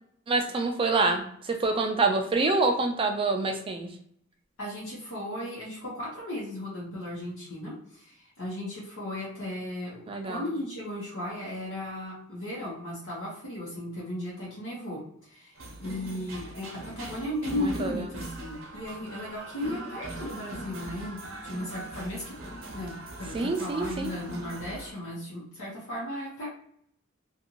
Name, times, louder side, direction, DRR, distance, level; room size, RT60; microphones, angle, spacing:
voice 1, 0.3-3.9 10.1-10.4 17.6-18.0 23.3-24.1, right 3 dB, 25° right, 4 dB, 0.3 m, -26 dB
voice 2, 4.6-22.3 22.7-26.5, left 1 dB, 80° left, -6 dB, 1.0 m, -36 dB
sound 1, 15.6-24.9, right 1 dB, 70° right, 0.7 m, -40 dB
2.6 x 2.5 x 2.8 m, 0.66 s
head